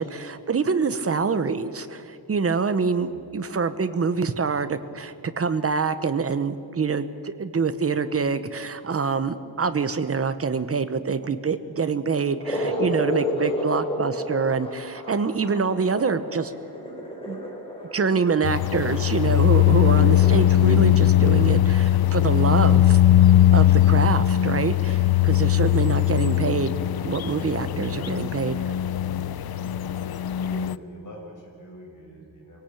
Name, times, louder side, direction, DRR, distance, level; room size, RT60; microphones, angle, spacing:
voice 1, 0.0-16.5 17.3-17.4 17.9-23.0 23.5-26.7 27.0-28.7, right 5 dB, 35° right, 11 dB, 1.0 m, -25 dB
sound 1, 12.4-20.4, equal, 15° left, 4.7 m, -31 dB
sound 2, 18.4-30.8, left 13 dB, 65° left, 0.6 m, -20 dB
voice 2, 23.7-24.3 27.9-28.2 30.3-32.6, equal, 50° left, -1 dB, 6.5 m, -44 dB
24.0 x 17.5 x 8.7 m, 2.6 s
wide cardioid pair, 180°, 40 cm